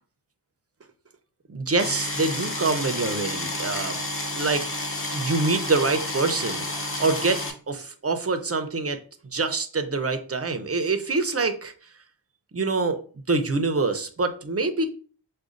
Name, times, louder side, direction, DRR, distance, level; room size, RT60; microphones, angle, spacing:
voice 1, 1.5-4.0 4.3-4.7 5.1-6.7 7.0-9.0 9.3-11.7 12.5-13.0 13.3-14.9, right 3 dB, 35° right, 8 dB, 0.6 m, -25 dB
sound 1, 1.8-7.5, left 2 dB, 30° left, 0.7 m, -30 dB
6.1 x 2.2 x 2.5 m, 0.41 s
wide cardioid pair, 45°, 44 cm